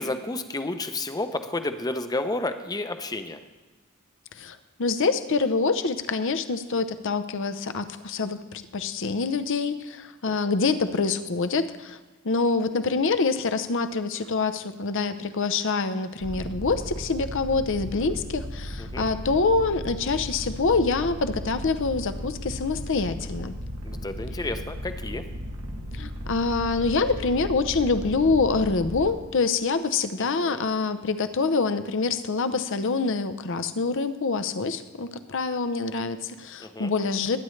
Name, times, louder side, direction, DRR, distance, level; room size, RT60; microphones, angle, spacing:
voice 1, 0.0-3.4 10.3-10.6 18.8-19.1 23.8-25.3 30.2-30.6 36.6-36.9, left 2 dB, 20° left, 8 dB, 0.7 m, -31 dB
voice 2, 4.4-8.4 8.7-12.0 12.2-23.5 25.9-37.4, left 4 dB, 65° left, 10 dB, 0.7 m, -26 dB
sound 1, 16.2-29.1, equal, 80° right, 1.6 m, -36 dB
21.5 x 9.7 x 3.2 m, 1.2 s
head